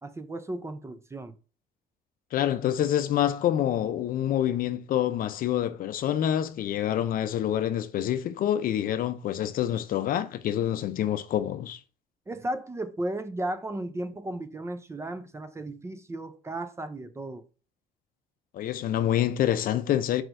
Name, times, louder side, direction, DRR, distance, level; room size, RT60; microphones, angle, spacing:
voice 1, 0.0-1.4 12.3-17.4, right 1 dB, 15° right, 0.5 m, -35 dB
voice 2, 2.3-11.8 18.5-20.2, left 11 dB, 55° left, 0.5 m, -27 dB
4.4 x 4.3 x 2.5 m
cardioid pair, 110°, 17 cm